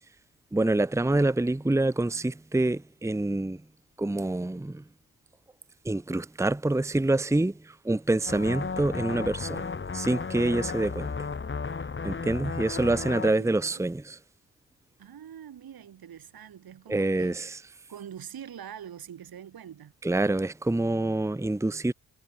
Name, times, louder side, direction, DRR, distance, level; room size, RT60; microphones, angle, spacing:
voice 1, 0.5-3.6 4.0-4.8 5.8-11.1 12.0-14.2 16.9-17.6 20.0-21.9, right 2 dB, 10° right, 0.9 m, -26 dB
sound 1, 8.3-13.3, left 5 dB, 30° left, 1.3 m, -34 dB
voice 2, 13.2-13.8 15.0-17.4 17.9-19.9, right 9 dB, 75° right, 2.5 m, -44 dB
cardioid pair, 50°, 36 cm